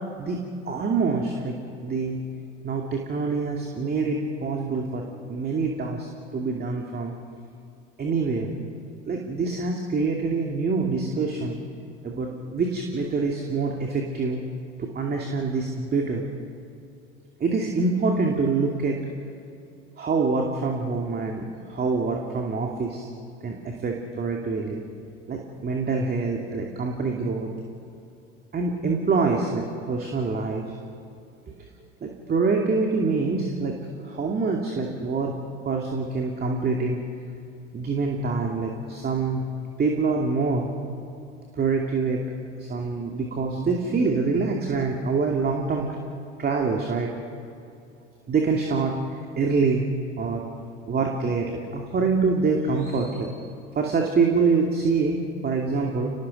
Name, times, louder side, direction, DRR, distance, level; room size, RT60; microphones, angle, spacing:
voice 1, 0.7-1.6 1.8-2.2 2.6-5.0 5.3-7.1 8.0-8.5 9.1-11.6 12.0-14.4 14.8-16.2 17.4-19.0 20.0-23.1 23.4-24.8 25.3-27.5 28.5-30.6 32.0-33.8 34.0-35.4 35.6-37.0 37.7-39.4 39.8-40.7 41.6-42.2 42.6-46.0 46.4-47.1 48.3-49.0 49.4-49.8 50.2-50.4 50.9-53.4 53.8-56.1, right 4 dB, 25° right, 1 dB, 2.5 m, -25 dB
29.5 x 19.5 x 5.3 m, 2.6 s
hypercardioid pair, 80°, 37 cm